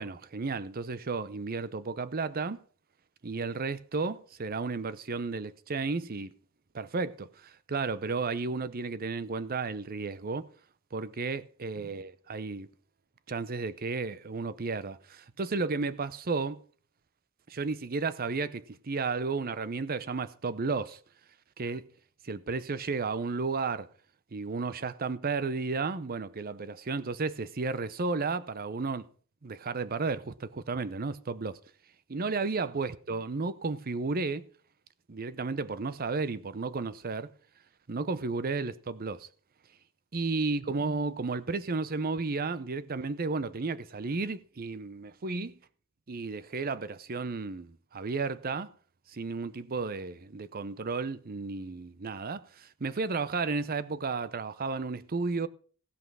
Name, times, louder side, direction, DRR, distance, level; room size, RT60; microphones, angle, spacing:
voice 1, 0.0-2.6 3.2-6.3 6.7-10.5 10.9-12.7 13.3-16.6 17.5-21.0 21.6-21.9 22.2-23.9 24.3-29.1 29.4-31.6 32.1-34.5 35.1-37.3 37.9-39.3 40.1-45.6 46.1-48.7 49.1-55.5, right 4 dB, 45° right, 0.7 m, -33 dB
16.5 x 5.7 x 6.1 m
head